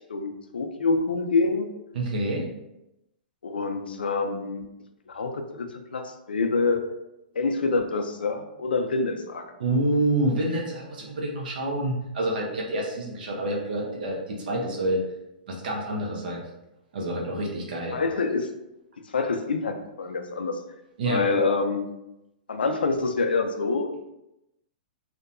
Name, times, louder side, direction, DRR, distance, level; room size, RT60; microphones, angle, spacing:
voice 1, 0.1-1.7 3.4-4.7 5.1-6.9 7.4-9.5 17.9-18.5 19.1-20.6 21.0-21.8 22.5-23.9, left 3 dB, 85° left, 6 dB, 0.4 m, -26 dB
voice 2, 1.9-2.5 9.6-15.0 15.5-16.4 16.9-18.0 21.0-21.3, right 1 dB, 65° right, -1 dB, 0.7 m, -27 dB
2.7 x 2.2 x 2.5 m, 0.89 s
hypercardioid pair, 125°, 5 cm